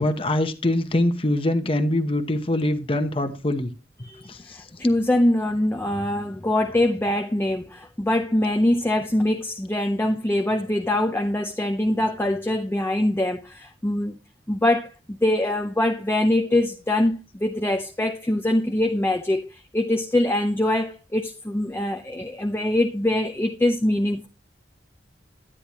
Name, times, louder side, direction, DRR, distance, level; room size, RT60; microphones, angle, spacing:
voice 1, 0.0-3.7 4.2-4.6, left 1 dB, 30° left, 1.0 m, -23 dB
voice 2, 4.0-14.2 14.5-24.3, left 1 dB, 15° left, 0.5 m, -23 dB
10.0 x 9.9 x 3.0 m
head